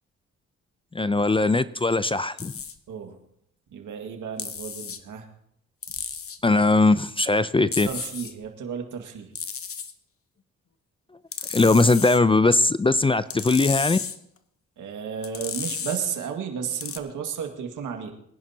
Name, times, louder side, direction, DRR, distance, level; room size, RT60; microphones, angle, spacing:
voice 1, 0.9-2.5 6.4-7.9 11.5-14.0, left 3 dB, 15° left, 15 dB, 0.5 m, -20 dB
sound 1, 2.4-2.7 4.4-5.0 5.8-6.4 7.7-8.3 9.4-9.9 11.3-12.2 13.3-14.2 15.2-16.0 16.8-17.0, left 6 dB, 45° left, 1.1 m, -33 dB
voice 2, 3.7-5.3 7.8-9.3 14.8-18.1, right 7 dB, 75° right, 4 dB, 2.0 m, -33 dB
23.5 x 11.0 x 2.9 m, 0.73 s
cardioid pair, 70°, 31 cm